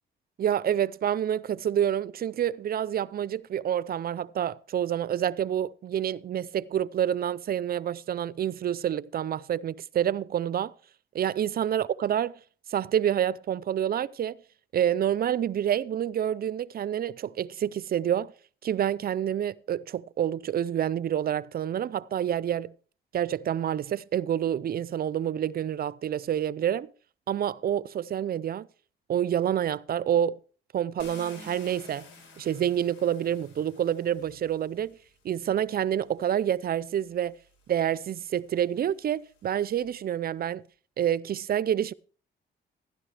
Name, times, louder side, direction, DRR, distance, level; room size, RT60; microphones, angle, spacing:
voice 1, 0.4-10.7 11.1-12.4 12.7-14.4 14.7-18.3 18.6-22.7 23.1-26.9 27.3-28.7 29.1-30.4 30.7-32.1 32.4-35.0 35.2-37.3 37.7-40.6 41.0-41.9, right 10 dB, 50° right, 0.5 m, -28 dB
Car, 31.0-35.1 36.1-36.2 36.7-40.0, left 3 dB, 90° left, 4.2 m, -52 dB
15.5 x 11.5 x 3.3 m
cardioid pair, 90°, 20 cm